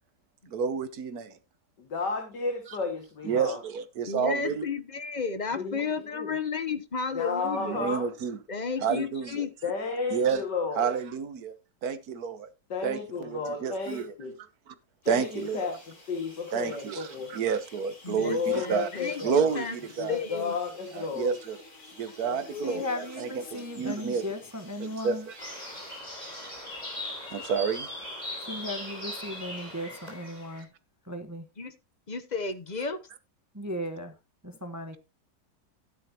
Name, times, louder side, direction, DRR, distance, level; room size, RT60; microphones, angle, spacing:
voice 1, 0.5-1.4 3.2-4.7 7.4-8.4 8.8-9.4 10.1-10.4 10.7-11.6 11.8-12.5 12.8-14.1 15.1-15.6 16.5-18.9 19.2-20.2 20.9-21.6 22.0-24.2 25.0-25.1 27.3-27.9, right 6 dB, 60° right, 1.4 m, -30 dB
voice 2, 1.8-3.6 5.5-6.3 7.1-8.1 9.6-10.9 12.7-14.3 15.0-17.3 18.1-19.6 20.0-21.4 21.8-21.9, left 4 dB, 70° left, 2.6 m, -33 dB
voice 3, 4.1-7.9 8.5-9.5 18.0-19.8 20.1-20.6 22.2-22.8 31.6-31.7 32.1-33.0, left 5 dB, 35° left, 0.7 m, -33 dB
sound 1, 15.0-26.0, left 2 dB, 55° left, 4.3 m, -51 dB
voice 4, 22.5-25.3 28.4-30.7 31.0-31.5 33.5-34.2 34.4-35.0, left 1 dB, 15° right, 0.7 m, -36 dB
sound 2, 25.4-30.6, left 1 dB, 20° left, 4.6 m, -39 dB
12.5 x 10.0 x 2.9 m
omnidirectional pair, 1.9 m